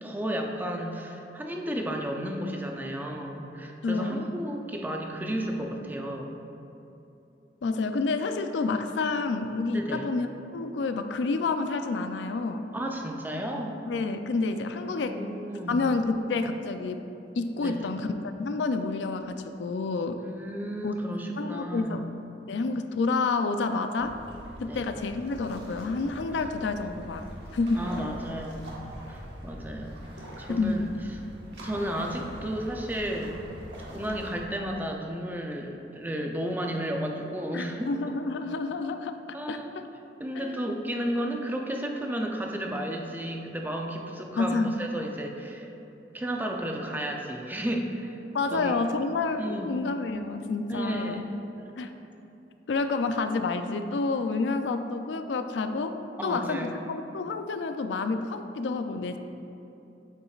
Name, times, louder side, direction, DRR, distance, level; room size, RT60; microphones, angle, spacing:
voice 1, 0.0-6.4 9.7-10.1 12.7-13.8 14.8-16.0 17.5-17.9 20.3-22.1 24.7-24.8 27.7-28.7 29.1-30.0 30.4-30.9 31.5-33.4 33.9-37.9 39.3-39.8 40.2-45.7 46.1-48.2 48.5-48.9 49.4-49.7 50.7-51.8 56.2-56.8, equal, 10° right, 1 dB, 0.5 m, -33 dB
voice 2, 3.8-4.2 7.6-10.3 10.5-12.7 13.9-15.2 15.7-17.0 17.4-18.1 18.4-20.2 20.8-20.9 21.4-22.0 22.5-24.2 24.6-27.3 27.5-27.9 30.5-30.9 37.5-39.2 39.5-39.8 40.4-40.6 44.4-44.8 48.3-51.2 51.8-51.9 52.7-59.2, left 3 dB, 85° left, 8 dB, 0.4 m, -29 dB
sound 1, 24.0-34.4, equal, 75° right, 1.3 m, -43 dB
8.3 x 7.0 x 2.4 m, 2.9 s
head